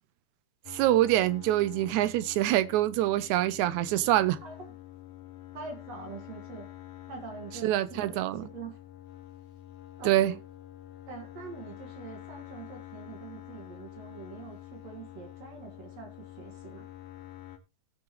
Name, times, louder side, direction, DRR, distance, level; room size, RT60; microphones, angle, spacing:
sound 1, 0.7-17.6, left 13 dB, 85° left, 2.5 m, -47 dB
voice 1, 0.7-4.4 7.6-8.4 10.0-10.3, right 14 dB, 80° right, 2.0 m, -25 dB
voice 2, 5.5-6.7 7.1-8.8 10.0-10.4 11.1-16.9, right 5 dB, 60° right, 2.7 m, -44 dB
17.5 x 6.3 x 3.0 m
omnidirectional pair, 3.4 m